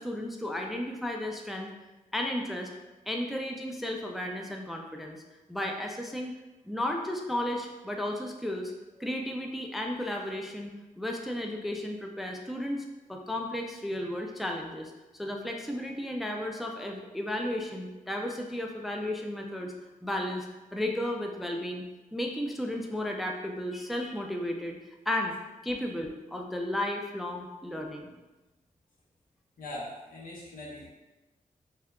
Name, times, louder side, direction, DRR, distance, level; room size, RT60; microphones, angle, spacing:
voice 1, 0.0-1.7 2.1-2.7 3.1-5.2 5.5-6.3 6.6-8.7 9.0-14.9 15.2-19.7 20.0-20.5 20.7-21.8 22.1-24.8 25.1-25.3 25.6-28.1, left 1 dB, ahead, 2 dB, 0.3 m, -33 dB
voice 2, 29.6-30.9, left 1 dB, 75° left, -5 dB, 0.9 m, -41 dB
3.6 x 2.7 x 2.2 m, 1.1 s
cardioid pair, 75°, 15 cm